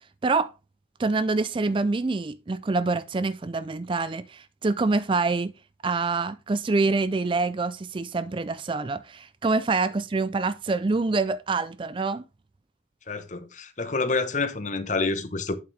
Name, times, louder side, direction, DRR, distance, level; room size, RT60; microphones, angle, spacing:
voice 1, 1.0-5.5 5.8-12.2, right 3 dB, 30° right, 0.4 m, -26 dB
voice 2, 13.1-15.5, left 3 dB, 40° left, 1.0 m, -28 dB
8.6 x 7.6 x 3.3 m
head